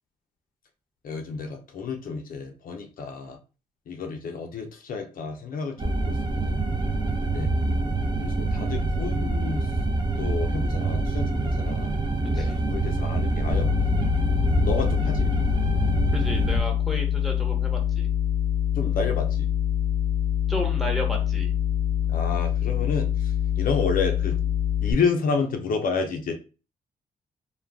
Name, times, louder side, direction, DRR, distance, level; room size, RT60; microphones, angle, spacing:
voice 1, 1.0-3.4 3.9-6.6 7.3-7.5 8.2-9.8 10.2-11.9 12.3-14.0 14.6-15.3 18.7-19.5 22.1-24.4 24.8-26.3, left 5 dB, 70° left, 4 dB, 0.5 m, -30 dB
sound 1, 5.8-16.6, right 2 dB, 30° right, 0.6 m, -26 dB
sound 2, 13.5-24.9, left 10 dB, 90° right, 0.9 m, -25 dB
voice 2, 16.1-18.1 20.5-21.5, equal, ahead, 2 dB, 0.9 m, -33 dB
2.3 x 2.2 x 3.3 m, 0.34 s
cardioid pair, 90°, 15 cm